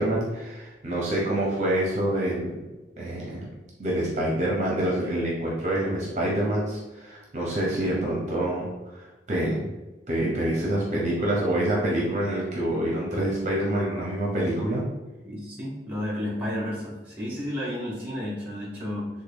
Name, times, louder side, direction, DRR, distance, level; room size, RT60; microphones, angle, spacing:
voice 1, 0.0-2.6 3.0-3.4 3.8-9.7 10.1-14.8, right 1 dB, 40° right, -4 dB, 0.6 m, -26 dB
voice 2, 15.2-19.1, left 1 dB, 10° right, -4 dB, 0.8 m, -32 dB
3.4 x 2.2 x 3.3 m, 1.1 s
head